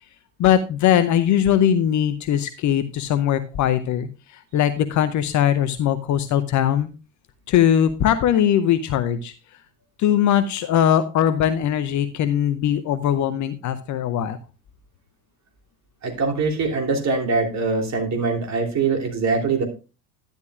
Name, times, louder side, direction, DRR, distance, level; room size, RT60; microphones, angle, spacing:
voice 1, 0.4-6.9 7.5-9.3 10.0-14.4, left 10 dB, 35° left, 11 dB, 0.7 m, -20 dB
voice 2, 16.0-19.6, right 4 dB, 35° right, 2 dB, 3.2 m, -23 dB
11.5 x 10.5 x 2.4 m, 0.31 s
figure-of-eight pair, 70°, 50 cm